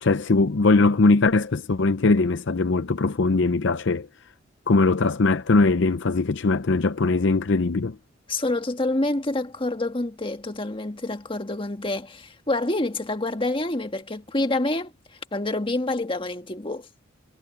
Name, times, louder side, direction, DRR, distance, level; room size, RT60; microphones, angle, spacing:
voice 1, 0.0-4.1 4.7-8.0, left 3 dB, 65° left, 0.6 m, -20 dB
voice 2, 8.3-14.9 15.3-16.9, left 2 dB, 25° left, 1.5 m, -27 dB
head